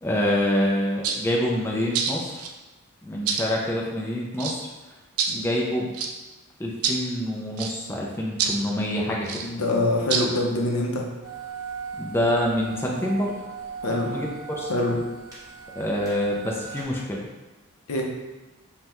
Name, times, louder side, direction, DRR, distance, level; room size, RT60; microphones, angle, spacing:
voice 1, 0.0-2.5 3.0-4.7 5.3-5.9 6.6-9.4 12.0-13.3 13.9-14.7 15.8-17.3, left 1 dB, 10° left, -2 dB, 0.4 m, -26 dB
sound 1, 1.0-1.2 1.9-2.5 3.3-3.5 4.4-4.6 5.2-5.3 5.9-6.1 6.8-7.0 7.6-7.7 8.4-8.6 9.2-9.5 10.1-10.3, right 6 dB, 70° right, 0.4 m, -26 dB
voice 2, 9.4-11.1 13.8-14.1 14.7-15.0 17.9-18.0, left 2 dB, 65° left, 1 dB, 0.6 m, -24 dB
sound 2, 11.2-16.8, right 6 dB, 15° right, 0.9 m, -38 dB
5.3 x 2.2 x 2.9 m, 1.1 s
head